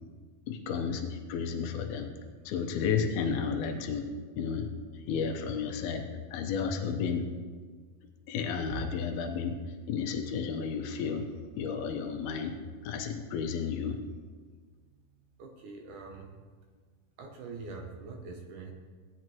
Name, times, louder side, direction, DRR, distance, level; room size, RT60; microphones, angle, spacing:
voice 1, 0.5-2.1 2.5-4.1 4.4-7.3 8.3-9.6 9.9-11.3 11.6-12.5 12.8-14.0, left 6 dB, 90° left, 5 dB, 2.7 m, -32 dB
voice 2, 15.4-16.3 17.2-18.7, right 4 dB, 70° right, 2 dB, 2.1 m, -43 dB
16.0 x 9.6 x 3.0 m, 1.5 s
omnidirectional pair, 4.4 m